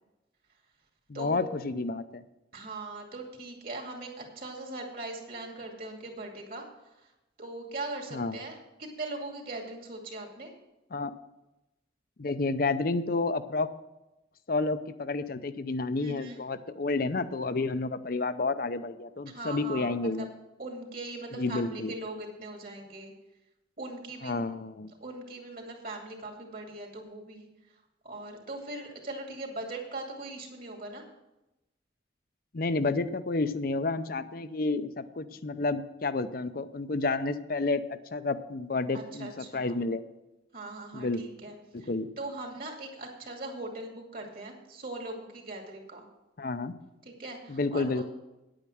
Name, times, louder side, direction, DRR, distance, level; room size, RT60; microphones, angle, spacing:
voice 1, 1.1-2.2 8.1-8.4 10.9-11.1 12.2-13.7 14.5-20.3 21.3-21.9 24.2-24.9 32.5-40.0 40.9-41.2 41.7-42.1 46.4-46.7 47.5-48.0, left 3 dB, 50° left, 12 dB, 0.6 m, -30 dB
voice 2, 2.5-7.1 7.4-10.5 16.0-16.4 19.3-20.3 20.6-23.1 23.8-24.4 25.0-27.5 28.0-31.0 38.9-39.8 40.5-41.9 42.2-46.1 47.0-48.0, right 2 dB, 50° right, 2 dB, 2.3 m, -40 dB
9.6 x 8.8 x 6.2 m, 0.97 s
head